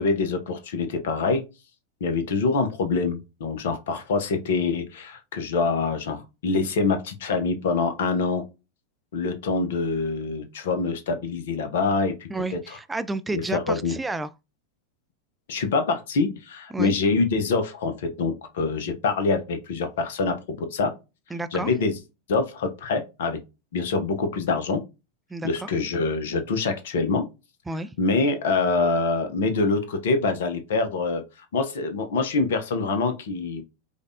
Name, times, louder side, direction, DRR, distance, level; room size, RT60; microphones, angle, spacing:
voice 1, 0.0-1.4 2.0-8.5 9.1-12.3 12.7-12.8 13.3-14.0 15.5-20.9 21.5-22.0 22.3-23.4 23.7-24.8 25.4-27.3 28.0-31.2 31.5-33.6, left 4 dB, 55° left, 0.8 m, -25 dB
voice 2, 12.3-14.3 16.7-16.9 21.3-21.7 25.3-25.7 27.7-27.9, right 2 dB, 10° right, 0.3 m, -31 dB
5.0 x 2.4 x 2.6 m
figure-of-eight pair, 90°, 0 cm